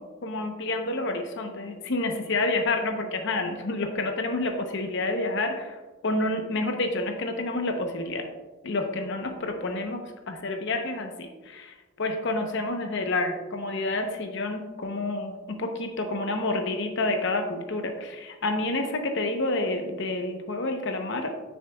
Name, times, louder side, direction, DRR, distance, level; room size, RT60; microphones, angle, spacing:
voice 1, 0.0-5.8 6.0-8.3 8.6-10.0 10.3-21.3, left 2 dB, 55° left, 4 dB, 0.8 m, -29 dB
9.8 x 6.5 x 2.3 m, 1.2 s
head